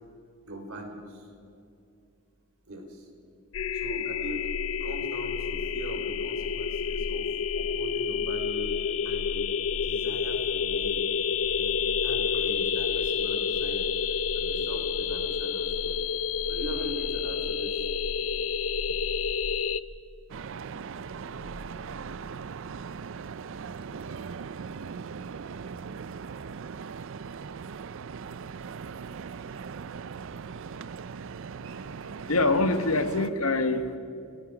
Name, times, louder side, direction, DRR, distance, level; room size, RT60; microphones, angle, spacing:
voice 1, 0.4-1.3 2.6-3.1 3.7-7.3 7.5-8.7 9.0-9.5 9.8-11.1 11.5-13.9 14.3-16.0 16.5-17.9, right 1 dB, 80° right, 3 dB, 4.2 m, -41 dB
sound 1, 3.5-19.8, left 6 dB, 65° left, 0.6 m, -29 dB
sound 2, 10.3-11.6 12.5-14.1 14.6-16.0 16.7-18.4 18.9-20.3 21.0-22.6, equal, 20° right, 4.3 m, -51 dB
sound 3, 20.3-33.3, right 5 dB, 65° right, 0.5 m, -39 dB
voice 2, 31.7-34.0, left 2 dB, 90° left, 9 dB, 1.5 m, -26 dB
29.5 x 19.5 x 4.9 m, 2.5 s
head